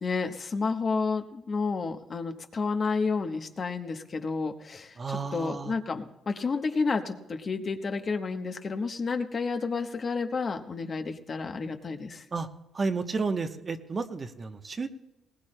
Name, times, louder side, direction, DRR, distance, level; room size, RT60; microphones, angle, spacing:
voice 1, 0.0-12.2, left 4 dB, 40° left, 6 dB, 1.0 m, -31 dB
voice 2, 5.0-5.7 12.3-12.5 12.7-14.9, right 4 dB, 35° right, 7 dB, 0.9 m, -31 dB
20.0 x 18.5 x 2.2 m, 0.96 s
cardioid pair, 90°, 0 cm